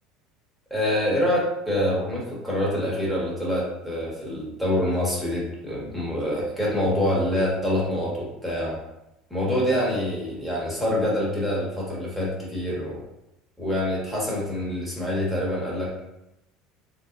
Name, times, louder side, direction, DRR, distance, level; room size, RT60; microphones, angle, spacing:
voice 1, 0.7-8.8 9.3-13.0 13.6-16.0, left 1 dB, ahead, -6 dB, 1.4 m, -26 dB
3.8 x 2.8 x 2.6 m, 0.89 s
cardioid pair, 130°, 0 cm